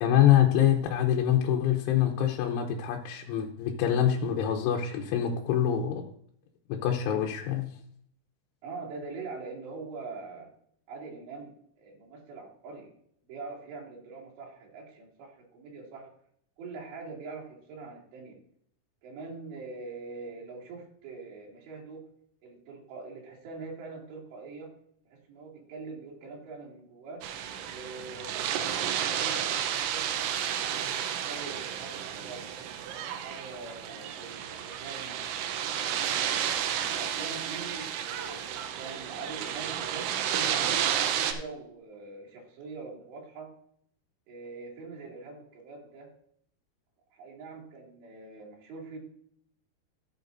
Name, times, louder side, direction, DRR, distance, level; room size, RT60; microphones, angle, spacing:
voice 1, 0.0-6.0 6.7-7.7, left 10 dB, 90° left, 1 dB, 3.3 m, -25 dB
voice 2, 8.6-10.5 10.9-12.9 13.3-16.1 16.6-18.4 19.0-22.0 22.4-24.7 25.1-27.2 27.7-30.8 31.2-32.5 33.1-35.2 35.8-36.4 36.8-40.6 41.1-43.5 44.3-46.1 47.1-49.0, right 4 dB, 70° right, -4 dB, 4.6 m, -43 dB
sound 1, 27.2-41.3, right 9 dB, 90° right, 3.3 m, -32 dB
14.0 x 8.3 x 2.6 m, 0.66 s
omnidirectional pair, 5.4 m